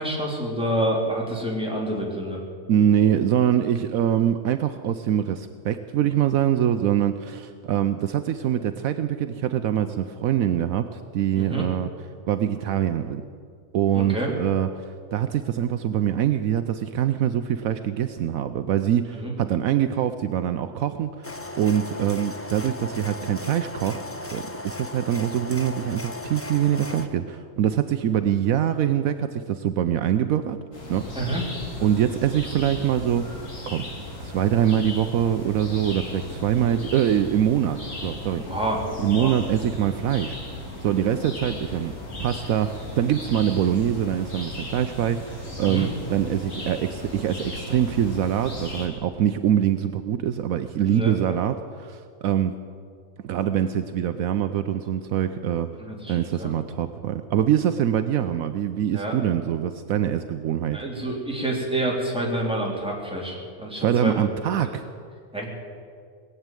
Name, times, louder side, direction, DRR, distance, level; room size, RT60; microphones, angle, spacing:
voice 1, 0.0-2.4 11.4-11.6 13.9-14.3 19.1-19.3 31.1-31.4 36.6-36.9 38.3-39.3 45.6-45.9 50.9-51.4 55.8-56.5 58.9-59.2 60.7-64.2 64.6-64.8 65.3-65.5, right 1 dB, 5° right, -3 dB, 3.0 m, -28 dB
voice 2, 2.7-11.9 12.3-13.2 13.7-24.0 24.3-30.6 30.9-31.1 31.8-33.3 33.7-33.8 34.2-38.4 39.0-40.4 40.8-41.9 42.2-52.5 53.2-55.7 56.1-60.8 63.8-64.8, right 10 dB, 75° right, 10 dB, 1.0 m, -24 dB
sound 1, 21.2-27.1, left 2 dB, 10° left, 0.8 m, -36 dB
sound 2, 30.7-48.9, left 1 dB, 60° left, 3.2 m, -36 dB
19.5 x 8.2 x 9.0 m, 2.1 s
omnidirectional pair, 1.5 m